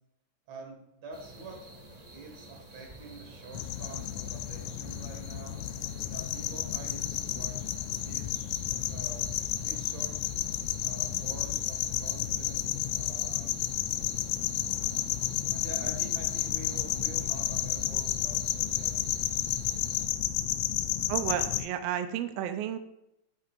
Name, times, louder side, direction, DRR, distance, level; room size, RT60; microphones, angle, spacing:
voice 1, 0.5-1.6 2.1-5.6 6.1-7.7 8.0-8.6 8.9-9.3 9.6-10.2 10.8-12.6 12.9-13.6 15.5-19.2, right 3 dB, 65° right, 0 dB, 3.1 m, -46 dB
sound 1, 1.1-20.1, right 1 dB, 35° right, 0.6 m, -50 dB
sound 2, 3.5-21.7, left 12 dB, 80° left, 1.8 m, -31 dB
voice 2, 21.1-22.8, right 10 dB, 85° right, 9 dB, 1.4 m, -32 dB
11.0 x 8.4 x 2.5 m, 0.85 s
omnidirectional pair, 3.5 m